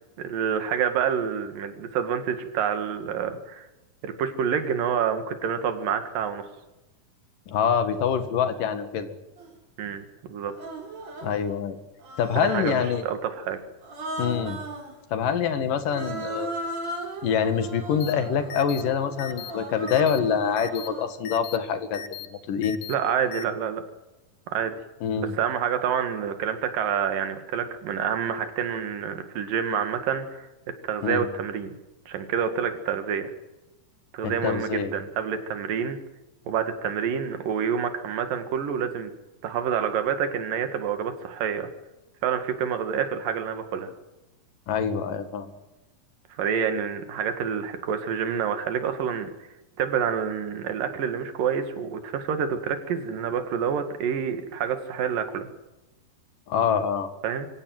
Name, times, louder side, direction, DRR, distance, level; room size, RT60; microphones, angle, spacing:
voice 1, 0.2-3.7 4.0-6.5 9.8-10.0 10.3-10.5 12.4-13.6 22.9-23.8 24.5-24.7 25.2-30.5 30.8-31.8 32.1-33.3 34.1-36.0 36.5-39.1 39.4-41.7 42.2-43.9 46.4-49.3 49.8-55.5 57.2-57.5, right 7 dB, 75° right, 8 dB, 3.6 m, -28 dB
voice 2, 7.5-9.2 11.2-11.8 12.2-13.1 14.2-14.6 15.1-16.5 17.2-22.8 25.0-25.3 31.0-31.3 34.2-34.9 44.7-45.5 56.5-57.1, left 7 dB, 70° left, 9 dB, 3.5 m, -25 dB
Human voice, 9.4-9.5 10.5-11.4 12.0-13.1 13.8-14.9 15.8-21.1, right 2 dB, 50° right, 4.6 m, -37 dB
sound 1, 18.0-18.1 18.5-18.8 19.2-19.5 19.9-20.2 20.6-20.9 21.3-21.6 21.9-22.3 22.6-22.9 23.3-23.4, left 10 dB, 90° left, 3.2 m, -37 dB
24.5 x 16.0 x 7.9 m, 1.0 s
omnidirectional pair, 4.0 m